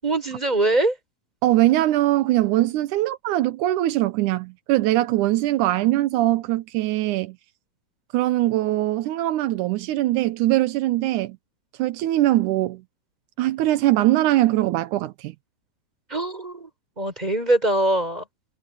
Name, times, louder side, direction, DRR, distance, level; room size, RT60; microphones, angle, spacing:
voice 1, 0.0-1.0 16.1-16.7 17.0-18.2, right 2 dB, 10° right, 6.2 m, -22 dB
voice 2, 1.4-7.4 8.1-11.4 11.8-12.8 13.4-15.3, right 15 dB, 85° right, 2.3 m, -21 dB
omnidirectional pair, 3.4 m